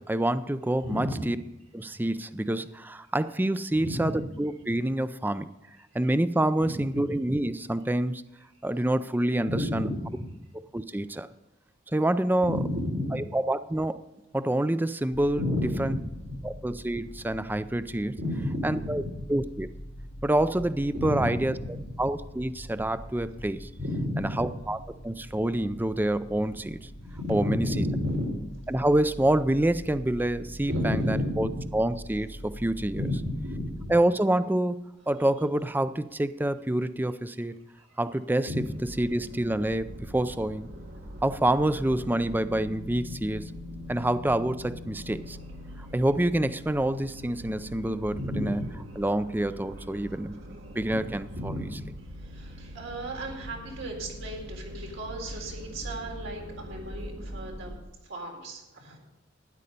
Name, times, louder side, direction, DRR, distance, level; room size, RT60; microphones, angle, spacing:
voice 1, 0.0-1.4 1.7-4.1 4.4-5.5 5.9-8.2 8.6-9.9 10.7-11.3 11.9-12.6 13.1-14.0 14.3-15.4 15.8-15.9 16.4-18.2 18.6-19.0 19.3-19.7 20.2-21.5 22.0-23.7 24.2-24.8 25.0-26.9 27.3-27.7 28.7-33.0 33.9-37.6 38.0-38.5 39.0-40.7 41.2-43.4 43.9-45.4 45.9-48.6 49.0-50.4 50.7-51.5, right 1 dB, 10° right, 13 dB, 0.4 m, -27 dB
voice 2, 0.8-1.3 3.7-4.2 6.6-6.7 9.4-10.1 12.4-13.2 15.4-16.3 18.1-19.3 20.9-21.5 23.8-24.5 27.0-28.4 30.6-31.7 32.9-33.9 37.9-38.0 38.5-38.6 48.1-48.7 50.9-51.0 51.3-51.8 52.2-57.8 58.0-59.0, left 1 dB, 85° right, 0 dB, 3.8 m, -32 dB
sound 1, 15.1-34.0, equal, 85° left, 1.6 m, -44 dB
sound 2, 38.6-57.8, equal, 55° right, 1.4 m, -42 dB
12.5 x 9.7 x 5.3 m, 0.97 s
head